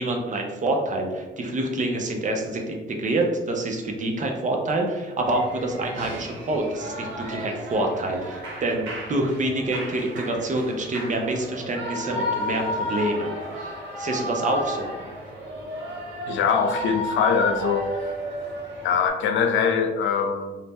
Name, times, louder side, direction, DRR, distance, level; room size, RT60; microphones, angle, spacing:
voice 1, 0.0-13.3 13.6-14.9, right 2 dB, 40° right, 2 dB, 0.6 m, -27 dB
Shout / Cheering, 5.2-19.1, equal, 75° right, 0.9 m, -33 dB
voice 2, 16.3-18.0 18.8-20.6, left 6 dB, 75° left, 5 dB, 0.4 m, -23 dB
2.6 x 2.1 x 3.4 m, 1.2 s
cardioid pair, 90°, 20 cm